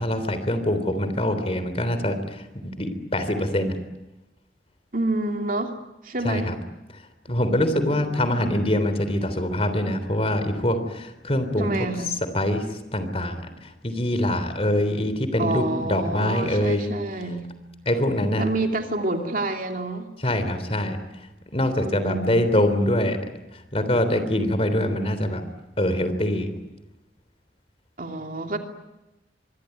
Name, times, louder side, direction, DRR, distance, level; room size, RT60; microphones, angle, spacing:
voice 1, 0.0-3.7 6.2-6.5 7.3-11.7 12.3-12.7 12.9-16.9 17.8-18.4 20.2-21.0 21.5-23.2 23.5-25.4 25.8-26.5, left 1 dB, 35° left, 10 dB, 3.4 m, -24 dB
voice 2, 4.9-5.7 6.0-6.5 7.9-8.4 11.6-12.1 15.4-17.5 18.4-20.1 21.8-22.4 28.0-28.6, right 2 dB, 50° right, 4 dB, 2.9 m, -28 dB
25.0 x 24.0 x 9.3 m, 0.98 s
head